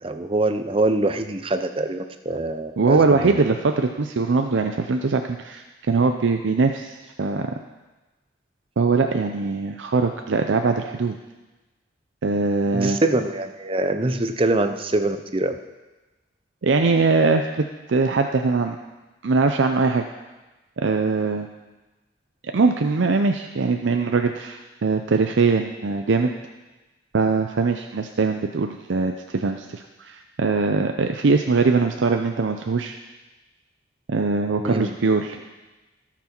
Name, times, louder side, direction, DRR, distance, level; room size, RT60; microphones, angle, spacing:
voice 1, 0.0-3.4 12.7-15.6 34.6-35.0, right 2 dB, 30° right, 8 dB, 0.6 m, -24 dB
voice 2, 2.8-7.5 8.8-11.2 12.2-13.0 16.6-18.8 19.2-20.0 20.8-21.5 22.5-26.3 27.1-33.0 34.1-35.4, right 4 dB, 85° right, 5 dB, 0.5 m, -21 dB
17.0 x 6.1 x 4.5 m, 1.1 s
head